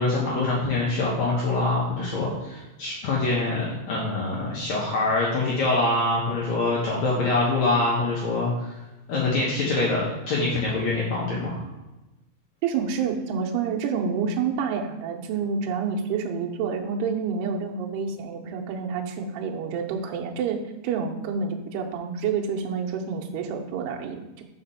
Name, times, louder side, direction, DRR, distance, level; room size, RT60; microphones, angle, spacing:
voice 1, 0.0-8.5 9.1-11.6, left 2 dB, 90° left, -5 dB, 1.6 m, -24 dB
voice 2, 12.6-24.4, right 6 dB, 80° right, 1 dB, 2.6 m, -28 dB
5.9 x 4.9 x 5.6 m, 1.0 s
omnidirectional pair, 5.3 m